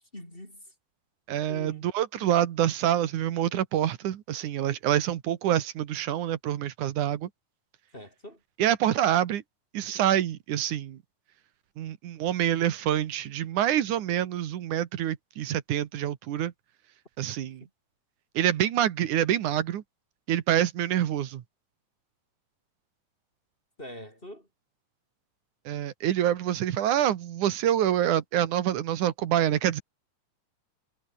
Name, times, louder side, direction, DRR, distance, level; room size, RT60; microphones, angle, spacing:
voice 1, 0.1-0.7 1.5-1.9 7.9-8.4 17.6-17.7 23.8-24.5, left 1 dB, 15° left, 6.9 m, -44 dB
voice 2, 1.3-7.3 8.6-9.4 9.7-11.0 11.8-16.5 17.2-17.6 18.3-19.8 20.3-21.4 25.7-29.8, right 11 dB, 70° right, 2.8 m, -26 dB
omnidirectional pair, 3.8 m